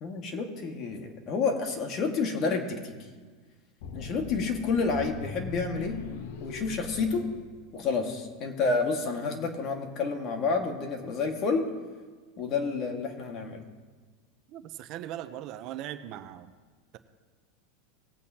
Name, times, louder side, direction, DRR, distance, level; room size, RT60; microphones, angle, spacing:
voice 1, 0.0-2.9 3.9-6.0 6.4-7.2 7.7-11.7 12.4-13.6, left 4 dB, 40° left, 4 dB, 1.7 m, -29 dB
sound 1, 3.8-8.1, left 6 dB, 70° left, 1.0 m, -40 dB
voice 2, 14.5-16.5, right 12 dB, 50° right, 11 dB, 0.6 m, -39 dB
19.0 x 8.5 x 2.8 m, 1.4 s
supercardioid pair, 130°, 0 cm